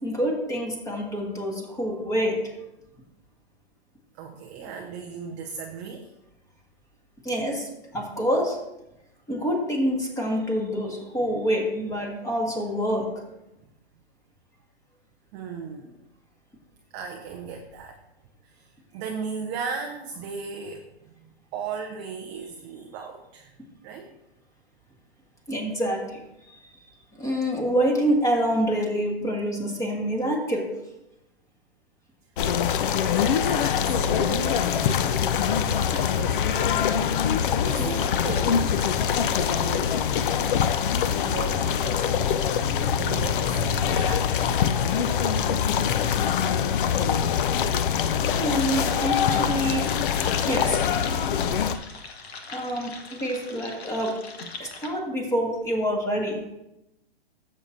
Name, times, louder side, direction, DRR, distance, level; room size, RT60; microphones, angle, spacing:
voice 1, 0.0-2.3 7.2-8.6 9.3-13.1 25.5-26.6 27.2-30.7 37.8-37.9 48.1-49.9 50.4-50.8 52.5-54.1 54.6-56.4, equal, 10° left, 1 dB, 1.6 m, -26 dB
voice 2, 4.2-6.1 15.3-16.0 16.9-18.0 18.4-20.9 21.2-23.5 23.8-24.1 33.2-34.8 35.8-36.4 37.6-39.9 41.2-42.1 42.8-43.6 43.9-45.0, right 6 dB, 15° right, 3 dB, 0.3 m, -36 dB
sound 1, 32.4-51.8, left 8 dB, 55° left, 0.6 m, -24 dB
sound 2, 48.2-54.9, left 4 dB, 75° left, 1.4 m, -41 dB
12.0 x 7.3 x 2.7 m, 0.90 s
hypercardioid pair, 130°, 32 cm